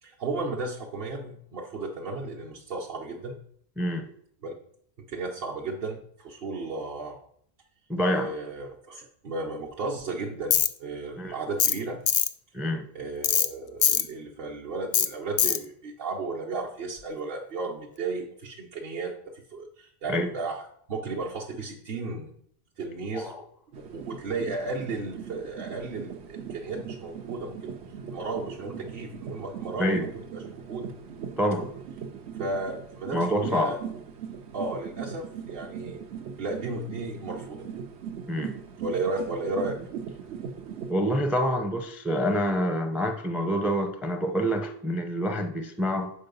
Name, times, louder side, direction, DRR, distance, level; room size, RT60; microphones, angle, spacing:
voice 1, 0.0-3.4 4.4-4.5 5.1-7.2 8.1-12.0 12.9-22.4 22.8-23.3 23.9-27.7 28.1-30.9 32.4-33.8 34.5-36.0 36.4-37.7 38.8-39.8, right 3 dB, 60° right, 1.0 m, -34 dB
voice 2, 3.8-4.1 7.9-8.3 11.2-11.4 12.5-12.9 20.1-20.3 23.1-23.4 29.8-30.1 31.4-31.7 33.1-33.7 38.3-38.5 40.9-46.1, equal, ahead, 0.3 m, -27 dB
Tools, 10.5-10.7 11.6-11.8 12.1-12.3 13.2-13.5 13.8-14.0 14.9-15.1 15.4-15.6, left 9 dB, 55° left, 0.5 m, -22 dB
sound 1, 23.7-40.9, right 7 dB, 85° right, 1.1 m, -39 dB
7.1 x 4.6 x 5.3 m
omnidirectional pair, 1.1 m